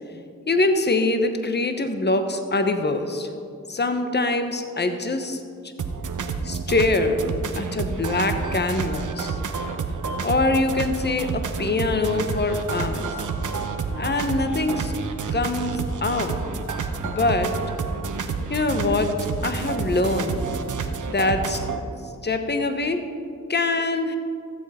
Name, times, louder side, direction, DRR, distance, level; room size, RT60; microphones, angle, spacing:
voice 1, 0.5-3.3 3.7-5.4 6.4-7.2 7.5-9.4 10.2-13.1 13.9-14.9 15.3-16.4 17.0-17.5 18.5-20.5 21.1-21.6 22.2-23.0 23.5-24.2, left 2 dB, 35° left, 7 dB, 1.0 m, -24 dB
sound 1, 5.8-21.8, right 5 dB, 75° right, 0.8 m, -29 dB
15.5 x 7.7 x 4.3 m, 2.3 s
cardioid pair, 45°, 31 cm